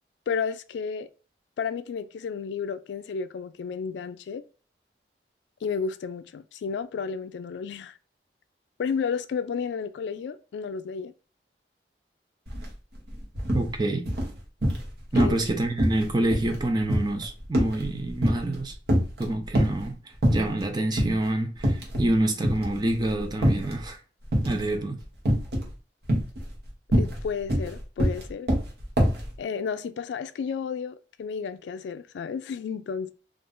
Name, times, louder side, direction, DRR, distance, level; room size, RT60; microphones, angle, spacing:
voice 1, 0.3-1.1 1.6-4.4 5.6-7.9 8.8-11.1 15.1-15.4 26.9-28.5 29.4-33.1, left 6 dB, 80° left, 0.3 m, -32 dB
sound 1, 12.5-12.7 13.0-13.7 14.1-14.9 15.2-15.5 15.8-18.6 18.9-19.8 20.2-20.6 21.0-21.2 21.6-22.1 22.4-23.8 24.3-24.7 25.3-25.7 26.0-29.3, equal, 60° right, 0.9 m, -24 dB
voice 2, 13.5-14.1 15.1-18.7 19.2-20.0 20.3-24.0 24.5-25.0, right 1 dB, 25° right, 0.5 m, -27 dB
2.5 x 2.4 x 3.5 m
head